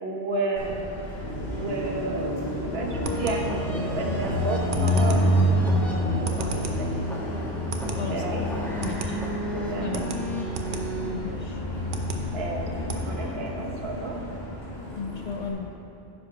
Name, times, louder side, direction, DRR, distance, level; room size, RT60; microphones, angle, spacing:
voice 1, 0.0-0.7 1.5-6.5 6.8-6.9 8.1-8.5 9.5-10.1 11.2-11.4 12.3-12.7 12.9-14.2, right 2 dB, 75° right, 0 dB, 1.3 m, -32 dB
Car passing by, 0.6-15.5, equal, 85° left, 2.0 m, -29 dB
sound 1, 2.1-13.0, right 3 dB, 55° right, 0.9 m, -38 dB
sound 2, 2.9-13.9, equal, ahead, 1.1 m, -35 dB
voice 2, 8.8-9.2 9.8-10.0 11.0-11.6 14.9-15.7, left 5 dB, 50° left, 3 dB, 0.6 m, -34 dB
9.7 x 5.3 x 5.7 m, 2.8 s
omnidirectional pair, 1.0 m